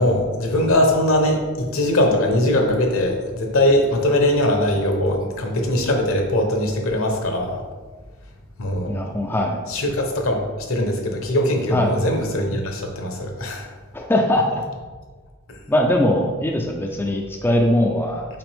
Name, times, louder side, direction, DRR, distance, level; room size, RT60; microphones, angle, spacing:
voice 1, 0.0-7.6 8.6-9.0 9.7-13.7, left 1 dB, 70° left, 3 dB, 1.0 m, -21 dB
voice 2, 8.9-9.6 11.7-11.9 13.9-14.6 15.7-18.3, left 1 dB, 10° left, 1 dB, 0.4 m, -20 dB
5.8 x 4.9 x 3.5 m, 1.4 s
head